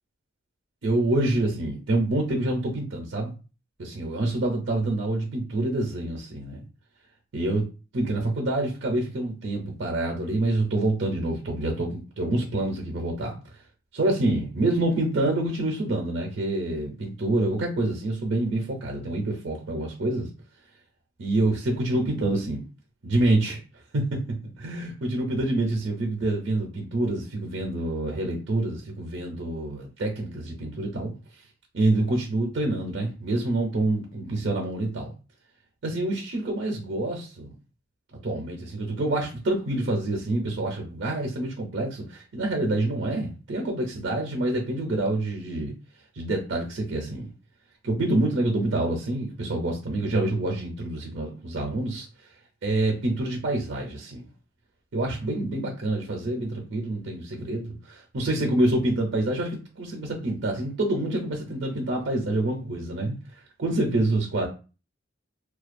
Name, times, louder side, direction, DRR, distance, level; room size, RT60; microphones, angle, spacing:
voice 1, 0.8-3.3 3.8-6.6 7.3-7.6 7.9-13.4 13.9-20.3 21.2-22.7 23.0-23.6 23.9-24.2 24.6-31.1 31.7-35.1 35.8-37.6 38.2-45.7 46.2-47.3 47.8-52.1 52.6-54.3 54.9-63.2 63.6-64.5, right 2 dB, 60° right, 0.6 m, -27 dB
2.4 x 2.2 x 2.5 m
head